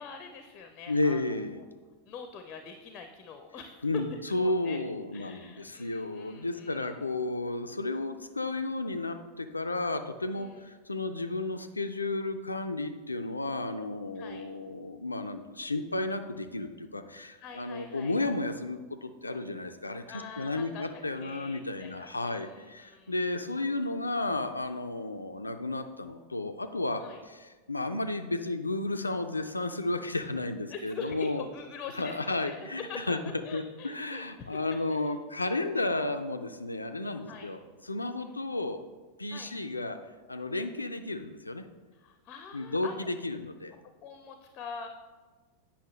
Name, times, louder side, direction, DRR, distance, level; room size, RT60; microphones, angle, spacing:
voice 1, 0.0-1.2 1.5-1.6 2.1-4.8 5.1-6.9 10.3-10.7 14.1-14.5 17.1-18.1 20.1-20.8 21.2-23.2 27.0-27.2 30.7-34.6 34.9-35.0 35.4-35.6 37.3-37.5 38.3-38.4 39.3-39.5 41.9-43.1 44.0-44.9, left 5 dB, 30° left, 6 dB, 0.5 m, -44 dB
voice 2, 0.9-1.6 3.8-27.0 27.3-27.4 27.7-31.4 31.9-33.2 33.5-38.8 39.2-40.0 40.3-41.6 42.5-43.8, left 2 dB, 80° left, 8 dB, 0.3 m, -33 dB
8.3 x 5.7 x 3.1 m, 1.4 s
figure-of-eight pair, 90°, 0 cm